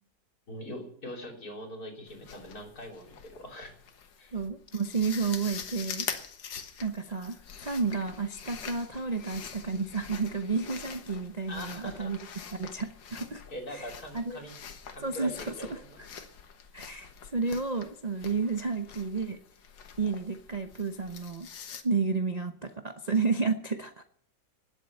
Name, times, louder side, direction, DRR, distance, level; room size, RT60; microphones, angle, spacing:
voice 1, 0.5-3.7 4.2-4.4 11.5-12.1 13.5-14.5 14.9-16.0, equal, 55° left, 3 dB, 3.8 m, -42 dB
sound 1, 2.1-21.8, left 7 dB, 90° left, 2.0 m, -45 dB
voice 2, 4.3-6.1 6.8-12.2 12.5-13.4 13.7-14.4 15.0-15.8 16.7-19.4 20.0-21.5 21.8-24.0, right 4 dB, 35° right, 7 dB, 0.7 m, -31 dB
19.5 x 7.8 x 6.7 m, 0.65 s
omnidirectional pair, 1.9 m